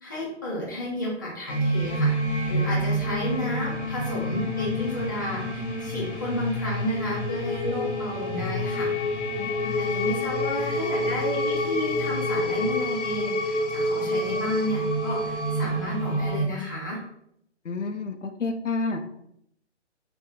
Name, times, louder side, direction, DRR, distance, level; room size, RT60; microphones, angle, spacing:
voice 1, 0.0-2.2 2.5-8.9 9.8-17.0, left 1 dB, 15° left, -5 dB, 0.4 m, -32 dB
sound 1, 1.5-16.5, equal, 70° left, 0.9 m, -27 dB
voice 2, 9.4-9.8 17.7-19.0, left 3 dB, 85° left, 6 dB, 0.6 m, -30 dB
3.4 x 2.1 x 3.6 m, 0.73 s
figure-of-eight pair, 140°, 35 cm